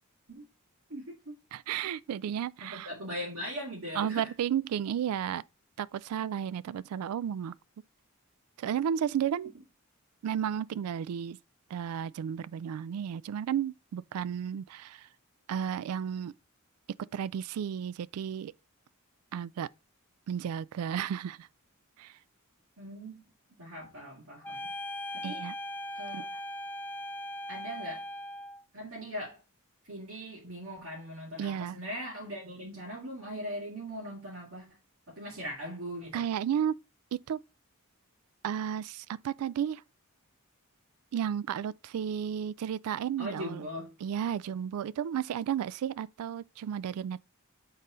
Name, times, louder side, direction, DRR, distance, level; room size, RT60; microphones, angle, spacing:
voice 1, 0.9-1.3 2.6-4.3 22.8-23.2 23.6-24.7 25.1-25.4 26.0-26.4 27.5-28.1 28.7-29.4 29.9-34.7 35.1-36.2 43.2-43.9, equal, 65° right, 2.4 m, -40 dB
voice 2, 1.5-2.9 4.0-5.4 5.8-7.5 8.6-9.5 10.2-11.4 11.7-15.0 15.5-16.3 17.1-18.5 19.3-19.7 20.3-21.5 22.0-22.1 25.2-25.5 26.1-26.2 31.4-31.8 36.1-36.8 37.1-37.4 38.4-39.8 41.1-43.6 44.0-47.2, right 9 dB, 85° right, 0.3 m, -33 dB
sound 1, 24.4-28.6, left 1 dB, 10° left, 0.4 m, -39 dB
7.3 x 4.0 x 3.8 m
head